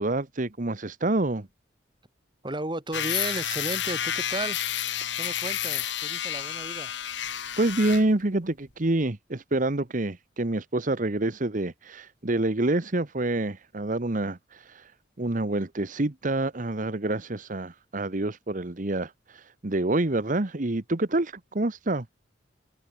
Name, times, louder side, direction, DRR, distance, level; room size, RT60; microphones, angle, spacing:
voice 1, 0.0-1.5 7.6-14.9 15.2-22.1, right 2 dB, 45° right, 1.2 m, -27 dB
voice 2, 2.4-4.6 5.2-6.9, right 1 dB, 25° right, 4.7 m, -34 dB
sound 1, 2.9-8.1, left 10 dB, 85° left, 2.2 m, -30 dB
head